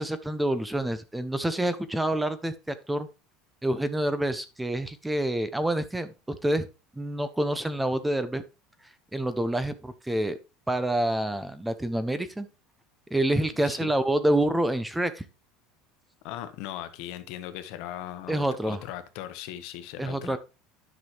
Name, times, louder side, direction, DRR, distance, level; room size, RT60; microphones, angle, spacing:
voice 1, 0.0-3.1 3.6-6.7 7.0-8.4 9.1-10.4 10.7-12.5 13.1-15.2 18.3-18.8 20.0-20.4, right 1 dB, 5° right, 0.6 m, -27 dB
voice 2, 13.5-13.9 16.2-20.4, left 12 dB, 65° left, 1.1 m, -39 dB
10.5 x 6.1 x 3.2 m
cardioid pair, 150°, 0 cm